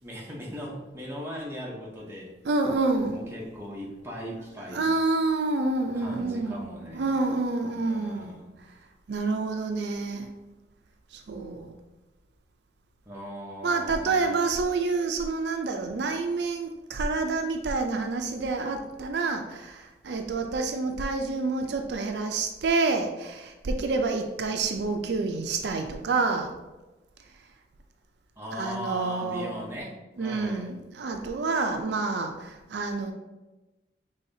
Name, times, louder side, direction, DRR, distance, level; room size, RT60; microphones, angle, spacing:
voice 1, 0.0-2.3 3.1-5.0 5.9-7.3 7.7-8.6 13.1-14.4 28.4-30.7, equal, 15° right, -3 dB, 0.8 m, -39 dB
voice 2, 2.4-3.2 4.7-8.3 9.1-10.3 11.1-11.7 13.6-26.5 28.6-29.5 30.2-33.1, right 3 dB, 70° right, 5 dB, 0.4 m, -28 dB
5.6 x 3.4 x 2.7 m, 1.1 s
head